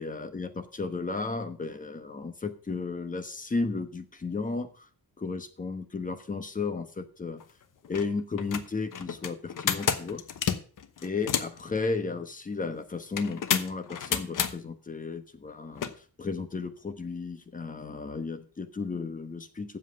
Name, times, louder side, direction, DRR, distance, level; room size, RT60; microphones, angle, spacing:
voice 1, 0.0-4.9 5.2-7.4 7.9-10.2 11.0-15.9 16.2-19.8, left 4 dB, 20° left, 8 dB, 1.1 m, -34 dB
sound 1, 7.4-7.5 7.8-8.1 8.4-11.6 13.2-14.5 15.8-15.9, left 8 dB, 55° left, 1.1 m, -30 dB
7.6 x 7.5 x 7.6 m, 0.41 s
wide cardioid pair, 150°, 38 cm